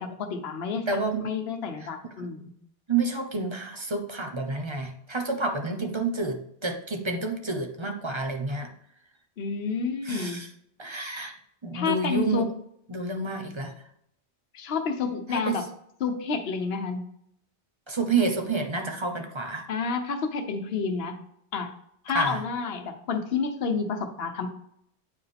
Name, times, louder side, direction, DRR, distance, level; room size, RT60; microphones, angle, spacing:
voice 1, 0.0-0.9 1.2-2.5 9.4-10.4 11.7-12.5 14.5-15.7 16.0-17.0 19.7-21.2 21.5-21.7 22.0-24.5, left 5 dB, 70° left, 5 dB, 1.1 m, -29 dB
voice 2, 0.9-1.4 1.8-1.9 2.2-2.3 2.9-8.7 10.0-10.5 10.8-11.3 11.6-12.5 12.9-13.7 15.3-15.7 17.9-19.7 22.1-22.4, right 3 dB, 30° right, 4 dB, 0.9 m, -29 dB
8.9 x 4.6 x 3.4 m, 0.71 s
omnidirectional pair, 1.1 m